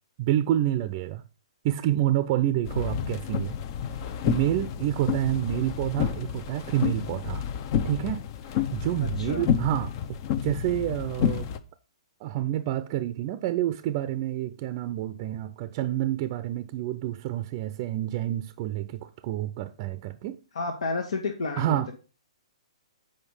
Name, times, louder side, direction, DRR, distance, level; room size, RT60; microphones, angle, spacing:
voice 1, 0.2-1.2 1.6-3.6 4.0-7.4 7.8-8.2 8.6-9.9 10.4-11.5 12.2-20.4 21.6-21.9, right 13 dB, 40° right, 0.6 m, -28 dB
sound 1, 2.6-11.6, left 8 dB, 40° left, 0.8 m, -30 dB
voice 2, 20.5-21.9, left 3 dB, 70° left, 1.4 m, -31 dB
8.0 x 5.2 x 5.5 m
hypercardioid pair, 125°, 3 cm